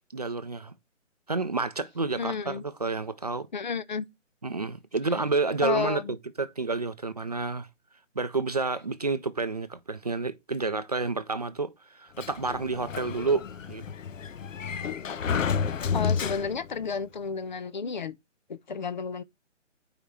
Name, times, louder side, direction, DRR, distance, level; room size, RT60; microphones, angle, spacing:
voice 1, 0.1-0.7 1.3-3.5 4.4-7.7 8.2-13.8, right 3 dB, 35° right, 0.4 m, -30 dB
voice 2, 2.2-2.6 3.5-4.0 5.6-6.1 15.3-15.5 15.9-18.2 18.5-19.2, left 6 dB, 40° left, 0.6 m, -32 dB
Sliding door, 12.2-16.8, left 6 dB, 90° left, 0.7 m, -31 dB
5.0 x 5.0 x 5.7 m
hypercardioid pair, 165°, 37 cm